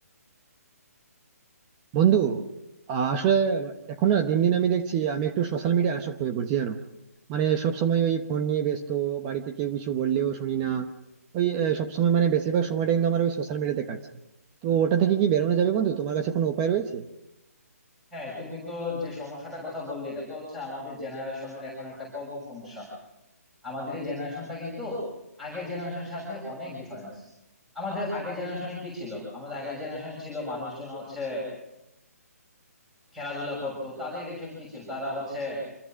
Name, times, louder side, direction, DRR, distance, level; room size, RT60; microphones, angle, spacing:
voice 1, 1.9-2.4 2.9-6.8 7.3-10.9 11.3-14.0 14.6-17.0, right 8 dB, 20° right, 6 dB, 1.0 m, -24 dB
voice 2, 18.1-22.9 23.6-25.0 25.4-27.3 27.7-31.5 33.1-35.6, left 2 dB, ahead, -5 dB, 6.4 m, -35 dB
26.0 x 22.0 x 6.3 m, 0.93 s
hypercardioid pair, 160°, 9 cm